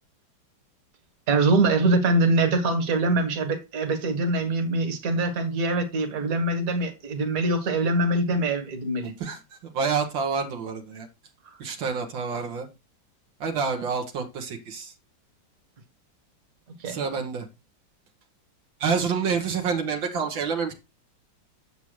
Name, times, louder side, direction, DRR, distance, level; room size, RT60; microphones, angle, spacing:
voice 1, 1.3-9.1 16.8-17.0, right 2 dB, 50° right, 1.8 m, -23 dB
voice 2, 9.2-11.1 11.6-12.7 13.4-14.9 16.9-17.5 18.8-20.7, right 5 dB, 80° right, 1.9 m, -28 dB
7.9 x 7.1 x 3.1 m
omnidirectional pair, 2.1 m